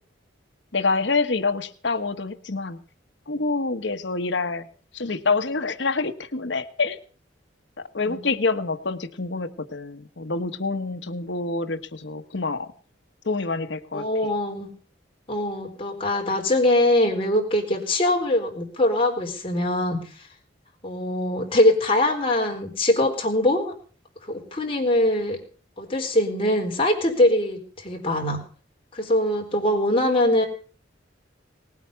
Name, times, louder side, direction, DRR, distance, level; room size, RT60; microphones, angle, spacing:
voice 1, 0.7-2.8 3.3-4.7 4.9-7.0 7.9-12.7 13.2-14.1, left 3 dB, 65° left, 10 dB, 1.2 m, -26 dB
voice 2, 13.9-14.7 15.3-20.0 20.8-23.7 24.3-25.4 25.8-28.4 28.9-30.5, left 1 dB, 30° left, 1 dB, 4.2 m, -22 dB
19.5 x 9.4 x 6.9 m, 0.42 s
head